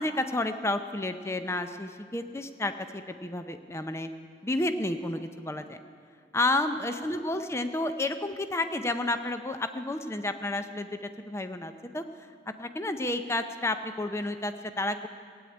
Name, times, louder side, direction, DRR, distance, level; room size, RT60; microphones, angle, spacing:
voice 1, 0.0-4.1 4.4-5.8 6.3-12.1 12.6-15.1, left 2 dB, 15° left, 9 dB, 0.5 m, -31 dB
17.0 x 8.6 x 9.7 m, 2.2 s
head